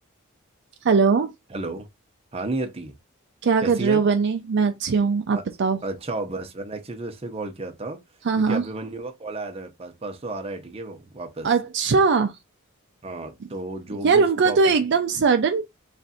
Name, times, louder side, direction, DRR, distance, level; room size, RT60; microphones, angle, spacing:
voice 1, 0.8-1.3 3.4-5.8 8.3-8.6 11.4-12.3 14.0-15.7, right 5 dB, 55° right, 0.4 m, -20 dB
voice 2, 1.5-1.9 2.3-3.0 3.6-4.0 5.3-5.5 5.8-8.0 8.4-11.5 13.0-14.6, right 2 dB, 30° right, 0.7 m, -32 dB
3.3 x 2.5 x 4.1 m
head